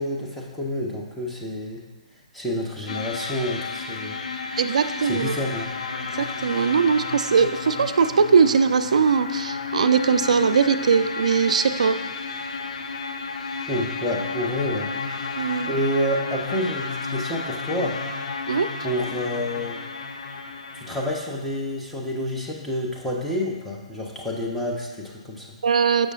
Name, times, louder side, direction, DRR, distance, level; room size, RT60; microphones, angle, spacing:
voice 1, 0.0-1.8 2.3-4.2 5.0-5.7 13.7-14.9 15.7-18.0 18.8-19.8 20.7-25.5, equal, 5° left, -3 dB, 0.8 m, -28 dB
sound 1, 2.9-21.1, left 4 dB, 65° left, 0.5 m, -32 dB
voice 2, 4.6-5.3 6.2-12.0 15.4-15.7 18.5-18.7 25.6-26.1, right 6 dB, 65° right, 11 dB, 0.3 m, -20 dB
6.5 x 6.2 x 2.5 m, 1.2 s
figure-of-eight pair, 140°, 4 cm